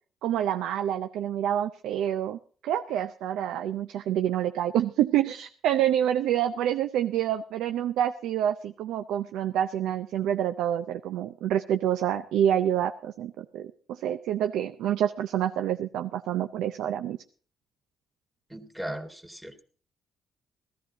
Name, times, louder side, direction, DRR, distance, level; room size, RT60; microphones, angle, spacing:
voice 1, 0.2-17.2, right 10 dB, 90° right, 10 dB, 0.5 m, -27 dB
voice 2, 18.5-19.6, right 1 dB, 5° right, 5 dB, 2.0 m, -38 dB
15.0 x 13.5 x 4.0 m, 0.43 s
cardioid pair, 90°, 0 cm